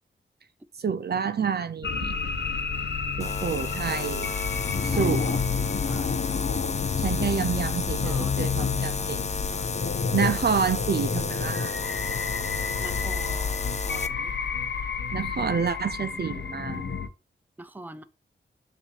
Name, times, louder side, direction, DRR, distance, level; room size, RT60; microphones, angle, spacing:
voice 1, 0.8-2.2 3.2-4.3 4.8-5.3 7.0-9.2 10.1-11.7 15.1-16.9, right 6 dB, 55° right, 0.5 m, -28 dB
sound 1, 1.8-17.1, left 5 dB, 60° left, 0.9 m, -30 dB
sound 2, 3.2-14.1, left 4 dB, 35° left, 0.5 m, -33 dB
voice 2, 4.9-5.4 5.9-6.1 8.0-10.1 12.8-14.3 17.6-18.0, right 2 dB, 10° right, 0.6 m, -44 dB
7.0 x 2.7 x 5.6 m
cardioid pair, 55°, 20 cm